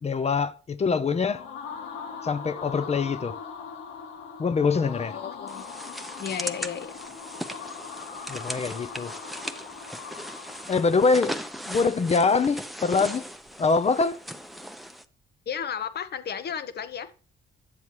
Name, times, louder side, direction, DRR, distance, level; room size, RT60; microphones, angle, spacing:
voice 1, 0.0-1.5 2.2-3.4 4.4-5.2 8.3-9.1 10.7-11.4 11.6-13.3 13.6-14.2, left 4 dB, 35° left, 0.6 m, -24 dB
sound 1, 1.0-11.9, left 6 dB, 85° left, 2.2 m, -41 dB
voice 2, 5.1-5.8 6.2-7.0 15.5-17.1, left 8 dB, 55° left, 1.1 m, -33 dB
sound 2, 5.5-15.0, equal, ahead, 0.8 m, -38 dB
9.7 x 7.1 x 3.0 m
cardioid pair, 90°, 20 cm